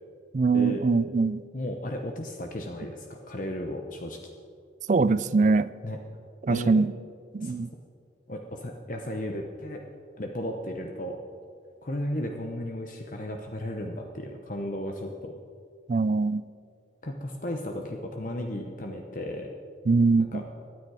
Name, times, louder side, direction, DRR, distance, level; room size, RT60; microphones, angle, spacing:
voice 1, 0.3-1.4 4.9-5.7 6.4-6.9 7.3-7.7 15.9-16.4 19.9-20.4, right 4 dB, 40° right, 16 dB, 0.4 m, -22 dB
voice 2, 1.5-4.2 5.8-6.0 6.5-6.7 7.4-7.5 8.3-9.8 10.2-11.2 11.8-15.3 17.0-19.5 20.3-20.4, left 1 dB, 45° left, 3 dB, 0.9 m, -34 dB
24.0 x 9.3 x 4.9 m, 2.3 s
head